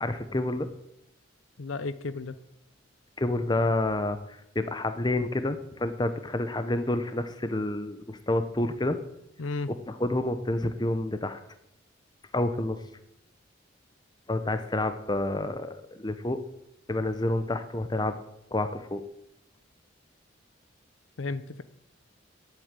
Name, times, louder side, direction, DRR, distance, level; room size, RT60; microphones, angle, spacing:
voice 1, 0.0-0.7 3.2-4.2 4.5-9.0 9.9-11.4 12.3-12.8 14.3-16.4 16.9-18.1 18.5-19.0, left 2 dB, 20° left, 9 dB, 0.8 m, -28 dB
voice 2, 1.6-2.4 9.4-9.7 21.2-21.6, left 3 dB, 85° left, 14 dB, 0.7 m, -33 dB
11.0 x 8.2 x 8.9 m, 0.82 s
head